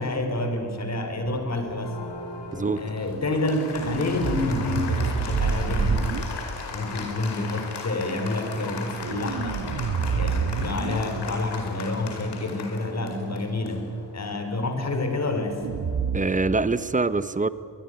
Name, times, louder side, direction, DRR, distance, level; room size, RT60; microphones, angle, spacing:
voice 1, 0.0-2.0 2.8-6.1 6.7-9.6 10.1-13.9 14.1-15.6, left 2 dB, 40° left, 6 dB, 3.9 m, -28 dB
sound 1, 1.3-1.6 3.7-6.2 8.8-11.4 15.6-16.2, right 5 dB, 60° right, 2.0 m, -28 dB
Applause, 1.6-16.0, left 4 dB, 70° left, 4.6 m, -38 dB
voice 2, 2.5-2.8 16.1-17.5, right 3 dB, 20° right, 14 dB, 0.8 m, -24 dB
24.5 x 21.5 x 9.5 m, 2.5 s
wide cardioid pair, 130°, 42 cm